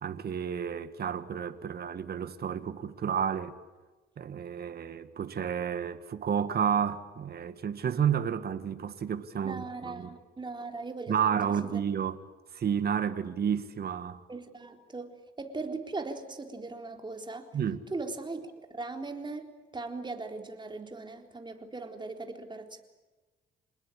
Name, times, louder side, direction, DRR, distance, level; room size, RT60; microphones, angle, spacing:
voice 1, 0.0-3.5 4.2-10.1 11.1-12.2 12.5-14.2 17.5-17.8, right 8 dB, 50° right, 1.8 m, -31 dB
voice 2, 9.4-11.4 14.3-17.5 17.9-22.8, right 3 dB, 25° right, 3.8 m, -39 dB
27.5 x 20.0 x 8.7 m
cardioid pair, 90°, 20 cm